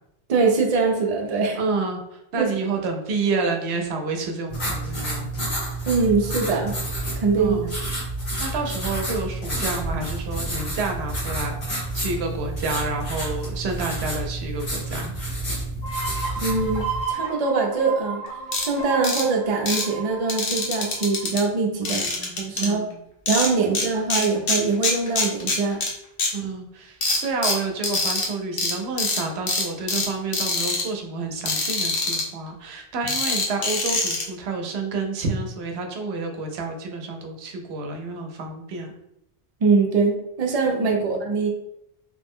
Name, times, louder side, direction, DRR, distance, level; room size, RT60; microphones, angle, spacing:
voice 1, 0.3-1.6 2.4-2.5 5.9-6.7 7.2-7.6 16.4-18.2 18.6-22.1 22.4-22.9 23.3-25.8 39.6-41.5, right 4 dB, 45° right, 1 dB, 0.6 m, -22 dB
voice 2, 1.5-5.3 7.3-7.7 8.4-15.1 21.8-23.0 23.6-23.8 26.3-38.9 41.0-41.1, right 3 dB, 85° right, 3 dB, 0.8 m, -29 dB
sound 1, 4.5-17.0, right 1 dB, 85° left, 1.6 m, -29 dB
sound 2, 15.8-21.3, right 5 dB, 30° left, 0.7 m, -33 dB
sound 3, 18.5-18.7 19.0-19.2 19.7-19.8 20.3-21.4 21.8-22.7 23.3-23.8 24.1-25.9 26.2-26.3 27.0-28.3 28.6-28.7 29.0-29.2 29.5-30.1 30.3-30.8 31.5-32.2 33.1-34.2, left 3 dB, 65° left, 0.9 m, -24 dB
3.1 x 2.0 x 3.5 m, 0.81 s
omnidirectional pair, 1.0 m